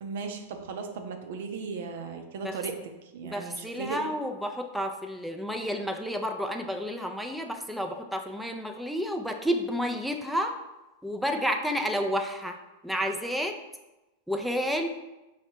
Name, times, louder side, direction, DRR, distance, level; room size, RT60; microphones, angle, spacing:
voice 1, 0.0-4.0, right 5 dB, 60° right, 5 dB, 0.6 m, -37 dB
voice 2, 3.2-10.5 11.0-12.6 12.8-13.6 14.3-14.9, equal, ahead, 3 dB, 0.4 m, -30 dB
5.6 x 2.1 x 4.5 m, 1.0 s
figure-of-eight pair, 95°, 0 cm